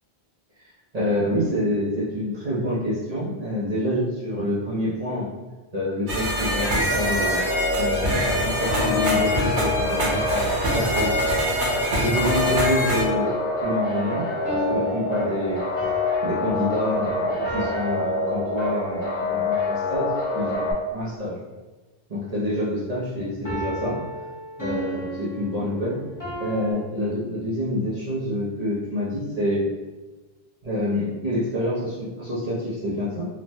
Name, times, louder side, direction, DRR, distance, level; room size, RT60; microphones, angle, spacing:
voice 1, 0.9-5.3 5.7-7.4 7.7-11.2 12.0-15.6 16.2-21.4 22.1-24.0 24.6-26.0 26.4-29.7 30.6-33.3, equal, 45° right, -8 dB, 0.6 m, -27 dB
sound 1, 6.1-13.0, equal, 90° right, 1.0 m, -25 dB
sound 2, 6.9-20.7, left 2 dB, 50° left, 0.9 m, -26 dB
sound 3, 14.4-19.0 23.4-26.7, equal, 20° left, 0.8 m, -35 dB
3.0 x 2.1 x 2.6 m, 1.2 s
omnidirectional pair, 1.1 m